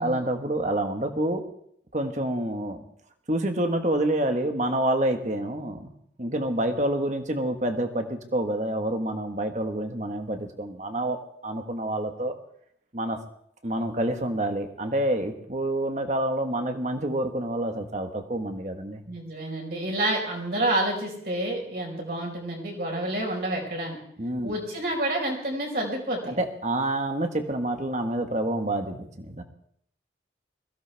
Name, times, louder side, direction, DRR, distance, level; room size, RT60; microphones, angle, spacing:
voice 1, 0.0-1.4 1.9-2.8 3.3-5.9 6.2-11.2 11.4-12.3 12.9-13.2 13.6-19.0 24.2-24.5 26.3-29.4, right 1 dB, 40° right, 5 dB, 1.5 m, -27 dB
voice 2, 19.1-24.0 24.4-26.4, right 1 dB, 55° right, -1 dB, 5.0 m, -29 dB
22.0 x 15.5 x 3.5 m, 0.68 s
head